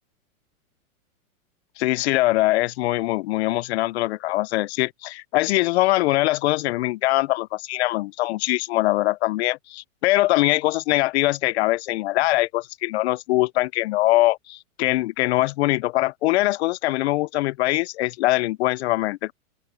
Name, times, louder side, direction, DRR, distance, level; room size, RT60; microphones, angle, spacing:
voice 1, 1.8-19.3, left 18 dB, 50° left, 0.5 m, -22 dB
open air
hypercardioid pair, 130°, 42 cm